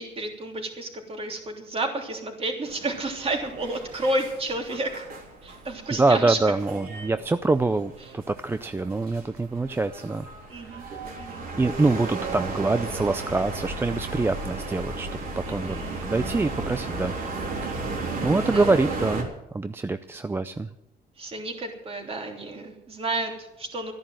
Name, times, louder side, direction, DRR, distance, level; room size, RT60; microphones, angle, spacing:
voice 1, 0.0-5.0 5.4-6.4 8.0-8.1 10.5-10.9 11.2-11.5 15.4-16.1 18.3-18.7 21.2-23.9, right 2 dB, 35° right, 2 dB, 3.2 m, -31 dB
sound 1, 2.7-19.2, right 3 dB, 60° right, 3.4 m, -35 dB
voice 2, 6.0-10.3 10.7-10.9 11.6-15.2 15.5-15.8 16.0-17.5 18.2-20.7, right 3 dB, 15° right, 11 dB, 0.5 m, -25 dB
13.0 x 10.5 x 7.7 m, 0.89 s
cardioid pair, 110°, 17 cm